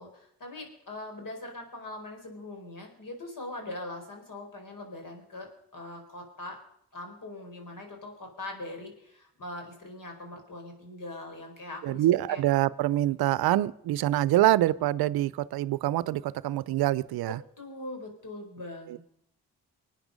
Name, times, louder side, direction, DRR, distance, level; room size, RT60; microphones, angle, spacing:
voice 1, 0.0-6.6 6.9-12.4 17.3-19.0, left 2 dB, 55° left, 3 dB, 4.5 m, -41 dB
voice 2, 11.8-17.4 18.9-19.0, right 14 dB, 75° right, 20 dB, 0.6 m, -25 dB
24.0 x 9.2 x 5.2 m, 0.73 s
supercardioid pair, 45°, 38 cm